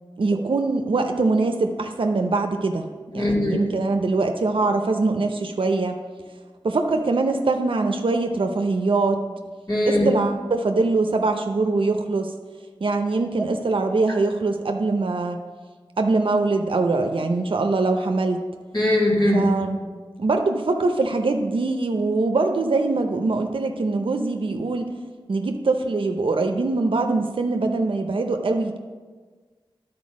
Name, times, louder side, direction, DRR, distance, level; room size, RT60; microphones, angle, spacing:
voice 1, 0.2-2.9 3.1-6.0 6.6-9.2 9.9-12.3 12.8-15.4 16.0-18.4 19.3-19.8 20.2-25.0 25.3-28.8, right 3 dB, 70° right, 5 dB, 0.6 m, -23 dB
voice 2, 3.1-3.6 9.7-10.1 18.7-19.5, left 1 dB, 45° left, -4 dB, 2.3 m, -20 dB
10.5 x 4.3 x 5.2 m, 1.4 s
wide cardioid pair, 60°, 9 cm